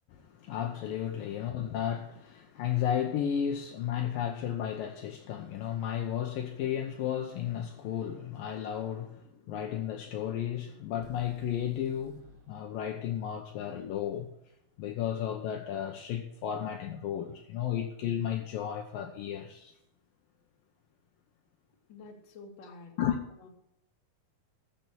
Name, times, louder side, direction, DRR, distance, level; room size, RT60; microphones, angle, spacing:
voice 1, 0.1-14.3 14.8-19.7 23.0-23.2, left 9 dB, 75° left, 2.5 m, -33 dB
sound 1, 11.0-15.0, right 3 dB, 65° right, 3.7 m, -58 dB
voice 2, 21.9-22.9 23.3-23.5, left 3 dB, 35° left, 2.3 m, -49 dB
14.0 x 6.2 x 7.5 m
omnidirectional pair, 4.5 m